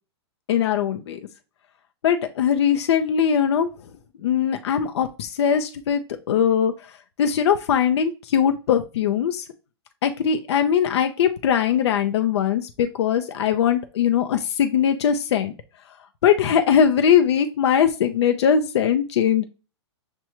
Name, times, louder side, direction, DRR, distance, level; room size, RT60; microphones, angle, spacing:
voice 1, 0.5-1.2 2.0-3.7 4.2-6.7 7.2-9.4 10.0-15.5 16.2-19.4, left 8 dB, 70° left, 7 dB, 0.5 m, -20 dB
6.3 x 2.2 x 2.9 m, 0.33 s
hypercardioid pair, 130°, 14 cm